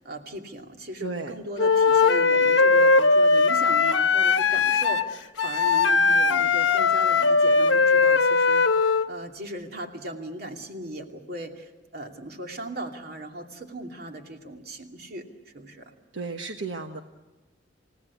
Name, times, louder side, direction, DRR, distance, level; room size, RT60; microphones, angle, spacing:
voice 1, 0.0-8.6 9.1-15.3 15.5-15.9, right 1 dB, 55° right, 3 dB, 2.6 m, -38 dB
voice 2, 1.0-1.3 16.1-17.0, right 3 dB, 80° right, 5 dB, 1.3 m, -33 dB
Wind instrument woodwind instrument, 1.6-9.1, left 4 dB, 80° left, 1.0 m, -20 dB
29.0 x 17.5 x 8.3 m, 1.3 s
head